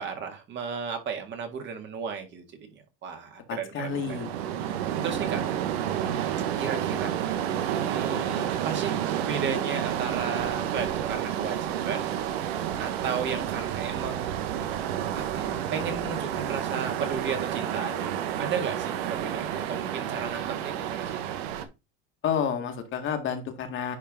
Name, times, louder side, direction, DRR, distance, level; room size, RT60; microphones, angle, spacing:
voice 1, 0.0-2.4 3.0-4.2 5.0-5.4 6.6-7.1 7.8-9.0 9.3-12.1 12.8-14.4 15.1-21.2, right 6 dB, 35° right, 1.9 m, -34 dB
voice 2, 3.5-4.4 22.2-24.0, left 7 dB, 40° left, 1.7 m, -30 dB
sound 1, 3.8-21.6, right 10 dB, 80° right, 1.1 m, -30 dB
10.0 x 3.5 x 3.6 m
supercardioid pair, 130°, 31 cm